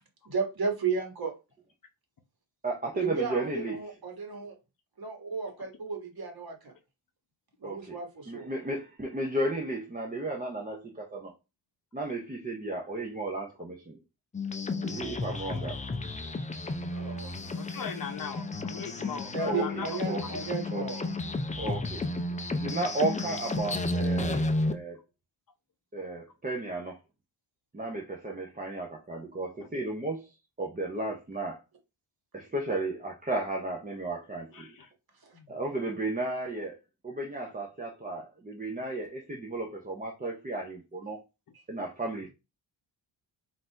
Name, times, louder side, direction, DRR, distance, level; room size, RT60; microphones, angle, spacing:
voice 1, 0.2-1.3 2.9-4.6 5.0-6.7 7.6-8.5 15.3-15.6 16.9-17.4 19.3-21.1 35.2-35.4, right 5 dB, 50° right, 1.5 m, -34 dB
voice 2, 2.6-3.8 7.6-8.0 8.3-11.3 11.9-14.0 14.8-15.8 19.5-20.4 20.7-20.8 21.6-22.0 22.5-25.0 25.9-27.0 27.7-30.3 30.6-31.6 32.3-34.7 35.5-36.8 37.0-41.2 41.7-42.3, right 2 dB, 20° right, 0.7 m, -34 dB
sound 1, 14.3-24.7, left 2 dB, 15° left, 0.4 m, -32 dB
voice 3, 17.6-20.0 34.5-34.9 35.3-35.5, left 6 dB, 45° left, 0.8 m, -39 dB
3.9 x 2.7 x 4.4 m
wide cardioid pair, 125°, 47 cm